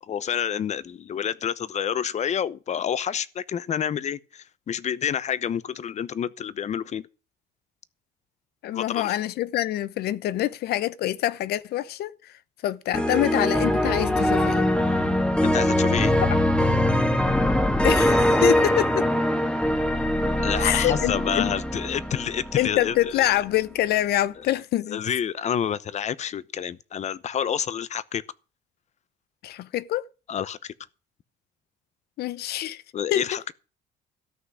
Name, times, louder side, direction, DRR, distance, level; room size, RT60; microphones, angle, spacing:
voice 1, 0.1-7.1 8.7-9.1 15.4-16.1 20.4-23.3 24.9-28.2 30.3-30.7 32.9-33.5, left 8 dB, 40° left, 0.8 m, -28 dB
voice 2, 8.6-12.1 12.6-14.7 17.8-19.0 20.6-21.5 22.6-25.0 29.4-30.1 32.2-32.8 33.1-33.2, left 13 dB, 70° left, 0.8 m, -25 dB
sound 1, 12.9-23.0, left 1 dB, 5° left, 1.6 m, -22 dB
13.5 x 6.0 x 9.7 m
cardioid pair, 110°, 17 cm